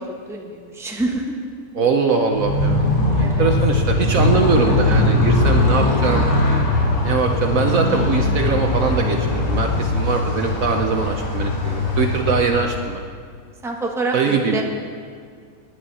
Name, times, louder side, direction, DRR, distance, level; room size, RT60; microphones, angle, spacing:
voice 1, 0.3-1.2 3.2-3.5 13.6-14.6, right 2 dB, ahead, 0 dB, 1.1 m, -26 dB
voice 2, 1.7-2.9 3.2-6.3 7.0-13.0 14.1-14.6, right 5 dB, 60° right, 3 dB, 1.1 m, -22 dB
Motorcycle, 2.3-12.9, left 2 dB, 85° left, 3.2 m, -20 dB
18.5 x 10.5 x 4.2 m, 2.1 s
omnidirectional pair, 1.8 m